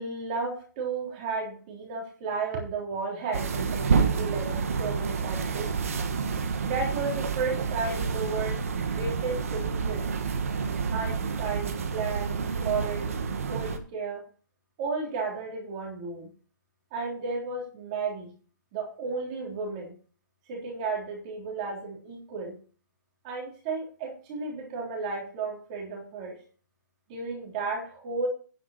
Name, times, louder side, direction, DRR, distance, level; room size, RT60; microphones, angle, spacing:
voice 1, 0.0-5.7 6.6-10.1 10.9-13.2 13.5-14.2 14.8-16.3 16.9-18.3 18.7-19.9 20.5-22.6 23.2-26.4 27.1-28.3, right 4 dB, 20° right, -1 dB, 3.6 m, -33 dB
sound 1, 3.3-13.8, right 5 dB, 45° right, 1.6 m, -29 dB
9.9 x 9.1 x 4.3 m, 0.39 s
hypercardioid pair, 180°, 10 cm